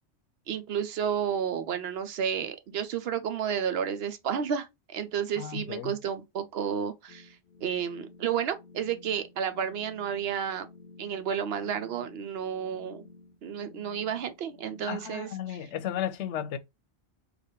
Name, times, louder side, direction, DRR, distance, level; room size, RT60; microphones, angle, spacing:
voice 1, 0.5-7.3 7.6-10.7 11.0-13.0 13.4-15.6, right 8 dB, 70° right, 0.8 m, -31 dB
voice 2, 5.4-5.9 14.9-16.6, left 10 dB, 85° left, 0.9 m, -34 dB
sound 1, 7.1-15.1, left 3 dB, 60° left, 0.9 m, -52 dB
4.9 x 2.4 x 2.7 m
omnidirectional pair, 1.2 m